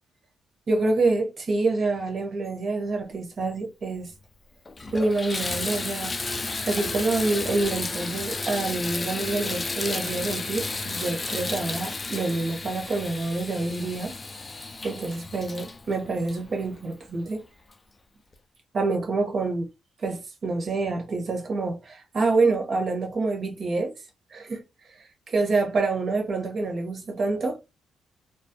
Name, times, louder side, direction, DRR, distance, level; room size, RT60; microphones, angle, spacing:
voice 1, 0.7-4.1 4.9-6.2 6.7-14.1 14.8-17.4 18.7-19.7 20.0-23.9 24.3-24.6 25.0-27.6, right 3 dB, 50° right, 0.9 m, -27 dB
Water tap faucet / Bathtub (filling or washing), 4.1-4.2 4.7-17.1 17.7-17.8 18.3-18.4, left 3 dB, 25° left, 0.3 m, -33 dB
2.3 x 2.0 x 2.7 m
cardioid pair, 90°, 0 cm